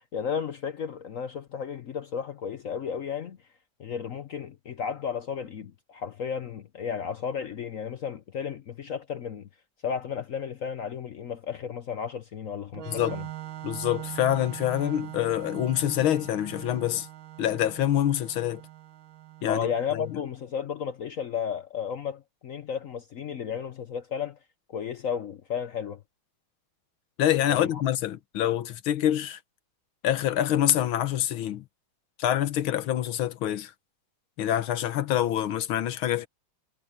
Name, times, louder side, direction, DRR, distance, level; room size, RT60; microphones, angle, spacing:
voice 1, 0.0-3.4 3.8-9.5 9.8-13.2 19.5-24.4 24.7-26.0 27.5-27.8, left 7 dB, 60° left, 0.8 m, -33 dB
Organ, 12.7-20.3, right 13 dB, 75° right, 2.2 m, -42 dB
voice 2, 13.6-17.1 17.4-18.6 19.4-20.0 27.2-29.4 30.0-31.7 32.2-33.7 34.4-36.3, left 11 dB, 80° left, 1.8 m, -26 dB
omnidirectional pair, 2.2 m